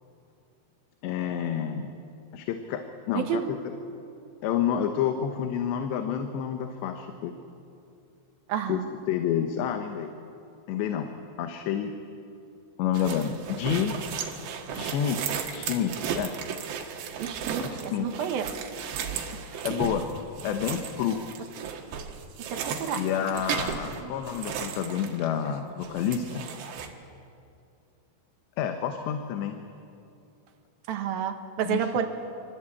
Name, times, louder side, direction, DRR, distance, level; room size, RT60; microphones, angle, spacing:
voice 1, 1.0-1.9 2.3-3.6 4.4-7.3 8.7-8.8 9.1-10.1 10.7-11.1 11.4-11.9 12.8-13.9 14.7-16.3 17.6-18.3 19.6-20.1 20.4-21.2 22.9-26.4 28.6-29.6 31.6-31.9, left 9 dB, 85° left, 6 dB, 3.4 m, -29 dB
voice 2, 3.1-3.5 8.5-8.8 17.2-18.5 22.5-23.0 24.0-24.1 30.9-32.1, right 8 dB, 65° right, 6 dB, 3.1 m, -30 dB
sound 1, 12.9-25.6 25.8-26.9, right 7 dB, 85° right, 4.0 m, -35 dB
25.5 x 25.5 x 8.6 m, 2.6 s
omnidirectional pair, 4.9 m